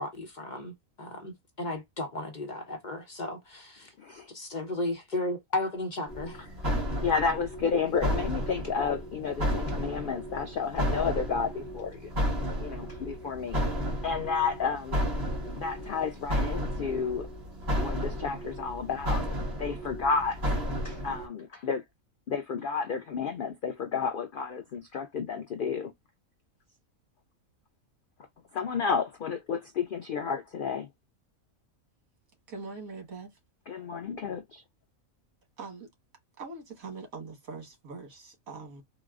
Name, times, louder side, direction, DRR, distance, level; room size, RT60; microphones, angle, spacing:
voice 1, 0.0-3.9 4.3-6.5, left 2 dB, 40° left, 0.8 m, -34 dB
sound 1, 6.1-21.3, equal, 50° right, 1.4 m, -32 dB
voice 2, 7.0-12.1 12.6-15.0 15.6-17.3 17.8-19.2 19.6-20.4 20.8-21.8 22.3-25.9 28.5-30.9 33.7-34.6, left 5 dB, 80° left, 0.4 m, -31 dB
voice 3, 32.5-33.4 35.6-35.9 36.4-38.8, right 4 dB, 85° right, 1.7 m, -42 dB
3.9 x 2.0 x 2.3 m
omnidirectional pair, 1.4 m